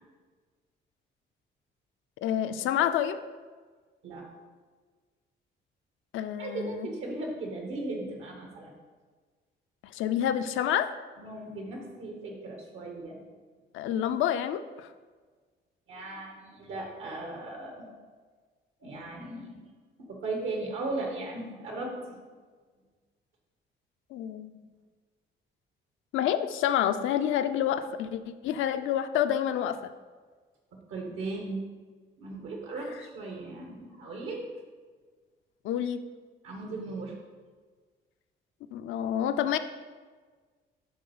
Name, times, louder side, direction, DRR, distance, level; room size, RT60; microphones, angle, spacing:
voice 1, 2.2-3.2 6.1-6.9 9.9-10.9 13.7-14.9 24.1-24.5 26.1-29.9 35.6-36.0 38.7-39.6, left 10 dB, 85° left, 9 dB, 0.5 m, -28 dB
voice 2, 6.4-8.7 11.2-13.2 15.9-17.9 18.8-19.6 20.0-22.2 30.9-31.6 32.2-34.4 36.4-37.1, right 2 dB, 85° right, 0 dB, 1.8 m, -37 dB
8.7 x 3.6 x 5.6 m, 1.5 s
cardioid pair, 90°, 20 cm